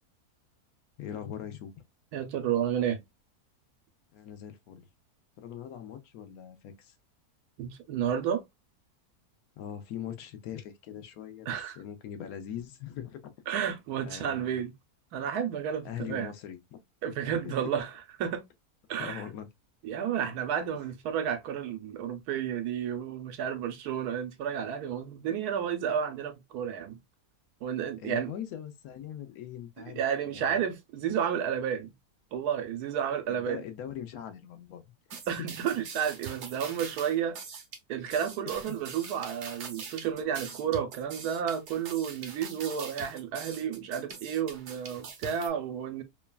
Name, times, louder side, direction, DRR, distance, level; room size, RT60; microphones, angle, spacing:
voice 1, 1.0-1.7 4.1-4.9 5.4-6.9 9.6-13.3 14.0-14.6 15.8-16.8 17.2-17.7 19.0-19.5 28.0-30.0 30.3-30.7 33.3-34.8 35.4-35.5 38.6-38.7, left 9 dB, 75° left, 1.0 m, -41 dB
voice 2, 2.1-3.0 7.6-8.4 11.5-11.8 13.5-14.7 15.1-16.3 17.0-17.9 18.2-18.4 18.9-19.2 19.8-27.0 27.6-28.3 29.9-31.9 32.3-33.6 35.3-37.4 37.9-46.0, right 8 dB, 85° right, 1.2 m, -31 dB
sound 1, 35.1-45.5, right 5 dB, 60° right, 0.8 m, -43 dB
3.1 x 2.2 x 2.2 m
omnidirectional pair, 1.6 m